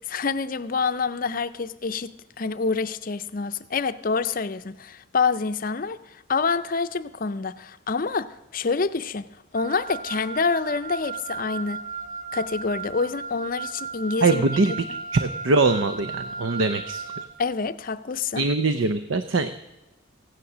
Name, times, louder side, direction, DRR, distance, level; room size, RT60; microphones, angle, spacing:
voice 1, 0.1-11.8 12.3-14.4 17.4-18.4, left 4 dB, 45° left, 0.5 m, -27 dB
Wind instrument woodwind instrument, 9.5-17.3, right 4 dB, 35° right, 1.2 m, -36 dB
voice 2, 14.2-14.9 15.1-17.0 18.4-19.5, right 3 dB, 70° right, 0.6 m, -22 dB
15.5 x 9.9 x 6.1 m
head